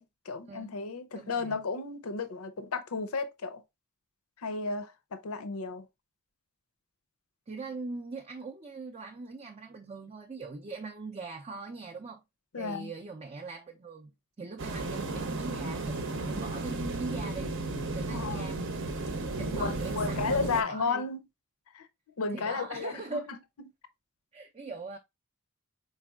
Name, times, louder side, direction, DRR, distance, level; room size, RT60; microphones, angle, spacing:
voice 1, 0.0-3.6 4.4-5.8 12.5-12.9 18.1-18.4 19.6-21.2 21.7-21.9 22.2-23.2, left 4 dB, 70° left, 0.6 m, -33 dB
voice 2, 1.1-1.6 7.5-12.2 12.6-14.1 14.4-17.5 17.9-18.6 19.4-21.0 22.3-23.3 24.3-25.0, right 3 dB, 25° right, 0.4 m, -41 dB
sound 1, 14.6-20.6, right 2 dB, 55° right, 0.7 m, -34 dB
4.2 x 4.0 x 2.3 m
head